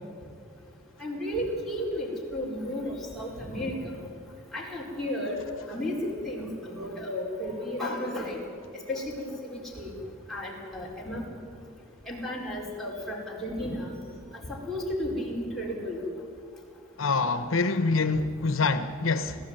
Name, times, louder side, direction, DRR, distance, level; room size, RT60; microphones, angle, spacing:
voice 1, 1.0-3.9 4.5-5.4 5.7-8.4 8.9-9.9 10.3-11.2 12.1-13.9 14.5-16.0, left 1 dB, ahead, 4.7 m, -33 dB
voice 2, 17.0-19.4, left 3 dB, 75° left, 0.9 m, -25 dB
24.5 x 16.0 x 9.0 m
head